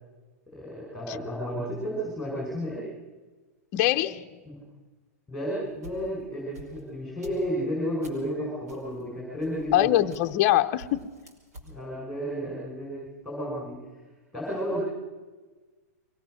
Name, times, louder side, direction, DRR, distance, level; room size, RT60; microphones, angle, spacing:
voice 1, 0.5-2.9 4.5-4.6 5.3-9.9 11.7-13.8 14.3-14.8, equal, ahead, -5 dB, 5.3 m, -32 dB
voice 2, 3.7-4.3 9.7-11.1, left 14 dB, 30° left, 7 dB, 0.7 m, -23 dB
sound 1, 5.5-8.3 8.7-10.5 10.8-11.7, right 1 dB, 90° right, 5.2 m, -48 dB
23.5 x 18.0 x 6.5 m, 1.3 s
supercardioid pair, 170°, 9 cm